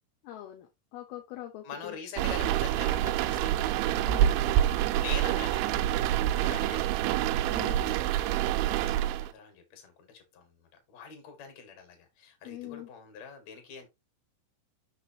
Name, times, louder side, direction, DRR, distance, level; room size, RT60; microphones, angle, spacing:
voice 1, 0.2-2.0 4.0-4.4 7.5-7.9 12.4-12.9, left 14 dB, 80° left, 2.3 m, -43 dB
voice 2, 1.6-4.0 4.7-5.9 6.3-7.0 8.1-13.9, left 6 dB, 50° left, 2.2 m, -44 dB
sound 1, 2.2-9.3, right 12 dB, 85° right, 2.8 m, -27 dB
6.6 x 5.9 x 2.9 m
omnidirectional pair, 5.5 m